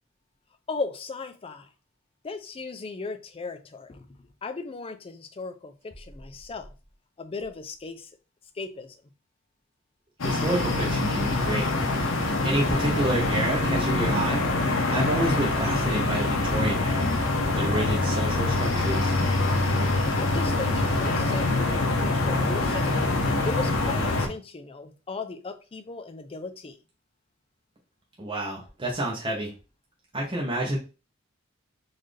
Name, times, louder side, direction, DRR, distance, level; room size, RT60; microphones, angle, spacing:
voice 1, 0.7-1.7 2.2-4.1 4.4-6.7 7.2-8.1 8.6-8.9 20.2-22.9 23.5-26.7, left 4 dB, 25° left, 8 dB, 0.4 m, -36 dB
sound 1, 10.2-24.3, left 2 dB, 70° left, 0.9 m, -25 dB
voice 2, 10.2-11.7 12.4-14.5 14.9-17.1 17.5-19.1 28.2-29.5 30.1-30.8, right 1 dB, 25° right, -3 dB, 0.8 m, -29 dB
4.0 x 2.6 x 3.2 m, 0.31 s
head